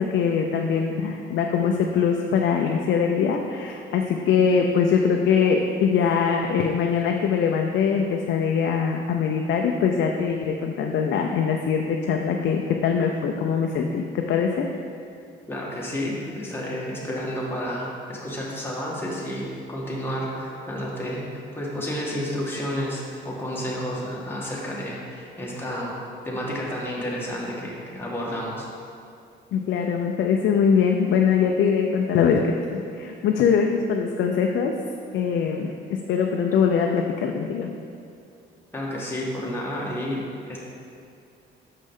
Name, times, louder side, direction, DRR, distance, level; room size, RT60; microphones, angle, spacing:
voice 1, 0.0-14.7 29.5-34.8 35.1-37.7, left 6 dB, 70° left, 2 dB, 0.5 m, -22 dB
voice 2, 15.5-21.3 21.5-25.9 26.2-28.7 38.7-40.6, equal, 10° left, -5 dB, 1.6 m, -31 dB
6.4 x 5.3 x 3.6 m, 2.4 s
cardioid pair, 90°, 20 cm